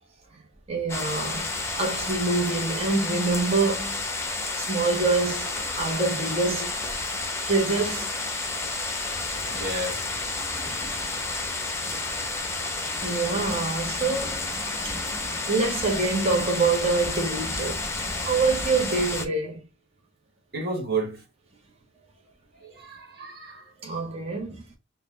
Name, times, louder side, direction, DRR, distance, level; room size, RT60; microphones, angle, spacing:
voice 1, 0.7-1.5 1.7-4.0 4.5-6.8 7.5-8.2 10.5-10.6 13.0-14.5 14.8-15.0 15.5-17.9 18.3-19.6 23.8-24.6, right 3 dB, 30° right, 0.8 m, -26 dB
sound 1, 0.9-19.3, left 3 dB, 15° left, 0.7 m, -31 dB
voice 2, 9.5-10.1 20.5-21.2 22.6-23.7, right 3 dB, 50° right, 1.4 m, -31 dB
4.2 x 2.2 x 3.8 m
head